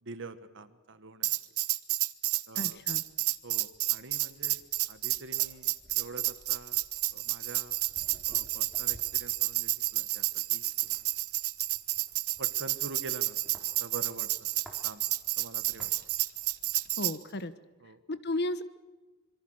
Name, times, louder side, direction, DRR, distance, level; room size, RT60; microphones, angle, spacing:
voice 1, 0.0-1.4 2.5-2.8 3.4-6.8 7.1-7.8 8.3-10.6 12.4-13.4 13.8-14.5 14.8-15.0 15.4-15.9 17.8-18.0, right 3 dB, 55° right, 11 dB, 1.5 m, -45 dB
Tambourine, 1.2-17.2, right 18 dB, 75° right, 0.8 m, -30 dB
voice 2, 2.6-3.0 17.0-17.5 18.1-18.6, left 2 dB, 50° left, 13 dB, 1.2 m, -33 dB
sound 1, 2.6-16.9, equal, ahead, 4.0 m, -58 dB
26.0 x 23.0 x 6.5 m, 1.2 s
head